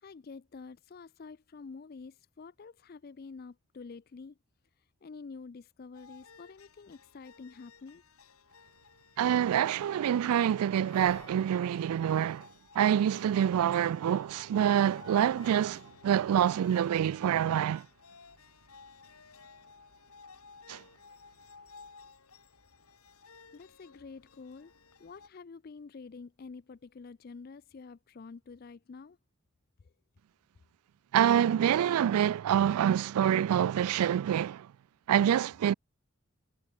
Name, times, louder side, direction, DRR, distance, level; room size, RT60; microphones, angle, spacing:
voice 1, 0.0-4.4 4.8-8.0 23.5-24.7 25.0-29.2 29.8-29.9, left 4 dB, 40° left, 0.4 m, -48 dB
sound 1, 5.9-25.3, left 4 dB, 85° left, 2.9 m, -56 dB
voice 2, 9.2-12.5 12.8-17.9 20.7-20.8 31.1-34.7 35.1-35.7, right 9 dB, 85° right, 0.3 m, -26 dB
sound 2, 10.9-11.6 13.1-13.3 14.3-14.8 15.4-15.9 16.5-16.8, left 3 dB, 20° left, 1.5 m, -57 dB
head